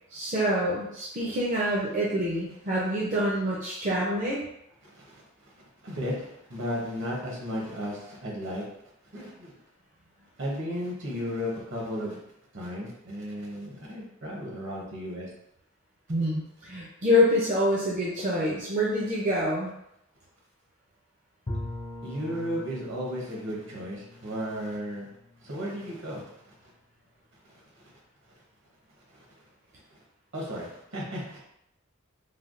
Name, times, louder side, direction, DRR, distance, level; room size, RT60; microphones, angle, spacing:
voice 1, 0.1-4.4 16.1-19.7, equal, 40° right, -5 dB, 0.5 m, -26 dB
voice 2, 4.8-5.2 5.8-8.7 9.1-9.5 10.4-12.2 12.5-15.3 22.0-25.1 25.4-26.3 27.4-27.8 29.1-29.3 29.9-30.0 30.3-31.4, equal, 65° right, -3 dB, 1.0 m, -34 dB
Bowed string instrument, 21.5-26.3, left 1 dB, 25° left, 0.4 m, -41 dB
3.2 x 2.2 x 2.5 m, 0.78 s
head